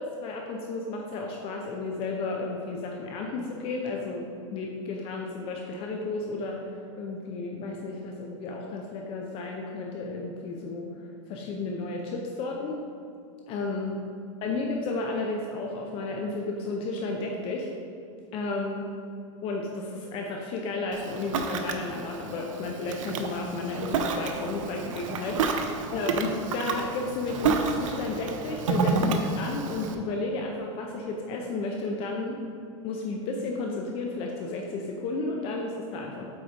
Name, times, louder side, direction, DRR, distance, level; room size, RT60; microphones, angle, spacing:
voice 1, 0.0-4.3 4.5-6.7 6.9-10.9 11.3-12.8 13.5-13.9 14.4-17.7 18.3-18.9 19.4-32.4 32.8-36.3, left 3 dB, 35° left, 1 dB, 0.7 m, -32 dB
Ocean, 20.9-29.9, right 4 dB, 85° right, 0.8 m, -30 dB
7.9 x 4.1 x 5.1 m, 2.6 s
supercardioid pair, 155°, 16 cm